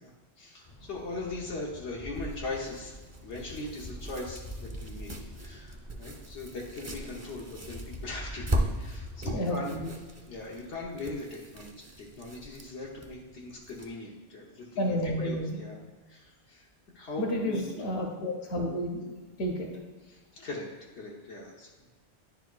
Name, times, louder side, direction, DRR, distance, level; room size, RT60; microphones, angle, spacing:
voice 1, 0.0-3.0 3.2-9.7 10.3-15.8 16.1-16.7 16.9-17.6 20.1-20.7 21.0-21.7, left 2 dB, 85° left, -3 dB, 1.2 m, -40 dB
sound 1, 0.7-9.3, left 1 dB, 40° left, 1.1 m, -44 dB
sound 2, 2.1-13.9, right 1 dB, 20° right, 0.5 m, -39 dB
voice 2, 9.2-9.9 14.8-15.5 17.2-19.1 19.4-19.7, equal, 65° left, 1 dB, 1.3 m, -30 dB
10.0 x 4.6 x 2.3 m, 1.3 s
omnidirectional pair, 1.1 m